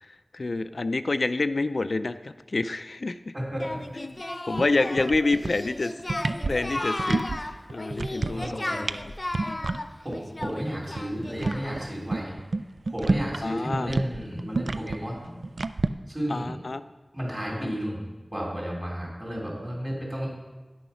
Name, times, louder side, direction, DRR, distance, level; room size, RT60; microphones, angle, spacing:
voice 1, 0.0-3.3 4.0-4.1 4.5-5.9 6.5-7.3 7.7-9.1 9.5-9.6 13.4-13.9 16.3-16.8, left 3 dB, 75° left, 11 dB, 0.4 m, -28 dB
voice 2, 3.3-3.8 8.3-8.9 10.0-12.4 12.8-15.4 16.1-16.6 17.1-18.0 18.3-20.3, equal, 25° right, -3 dB, 3.4 m, -32 dB
Singing, 3.6-11.9, left 1 dB, 35° left, 0.7 m, -35 dB
sound 1, 4.5-4.7 5.0-5.7 6.0-7.4 7.7-8.5 8.8-9.0 9.3-9.8 10.1-10.2 10.4-10.5 10.8-13.4 13.7-15.9, right 3 dB, 85° right, 0.3 m, -28 dB
9.9 x 6.3 x 5.6 m, 1.2 s
wide cardioid pair, 60°, 0 cm